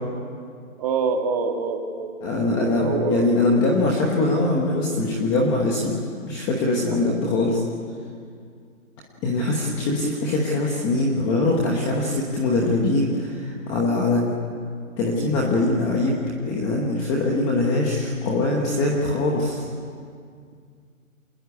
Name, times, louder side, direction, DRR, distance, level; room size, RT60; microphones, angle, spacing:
voice 1, 0.8-2.1 2.5-3.3 6.9-7.2, right 5 dB, 25° right, 3 dB, 2.4 m, -26 dB
voice 2, 2.2-6.0 6.2-7.6 9.2-13.3 13.7-14.3 15.0-16.2 16.4-19.6, left 2 dB, 10° left, -2 dB, 1.0 m, -22 dB
26.5 x 20.5 x 9.5 m, 2.1 s
hypercardioid pair, 165°, 43 cm